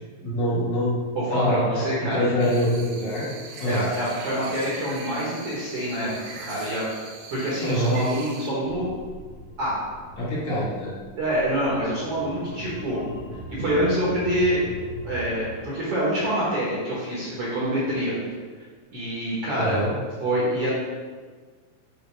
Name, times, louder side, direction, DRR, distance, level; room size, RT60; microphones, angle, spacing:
voice 1, 0.2-0.9 1.3-3.2 3.6-3.9 7.6-8.0 10.2-10.9 19.6-19.9, equal, 55° left, -8 dB, 2.2 m, -25 dB
voice 2, 1.3-2.3 3.7-6.1 6.4-6.9 7.3-8.9 9.6-9.8 11.2-13.0 13.6-14.6 15.0-18.1 18.9-19.8 20.2-20.7, right 1 dB, 55° right, -7 dB, 1.8 m, -26 dB
sound 1, 2.4-8.5, right 3 dB, 70° right, 2.3 m, -41 dB
sound 2, 8.6-15.5, left 1 dB, 80° left, 1.5 m, -40 dB
7.9 x 4.7 x 4.6 m, 1.5 s
omnidirectional pair, 4.5 m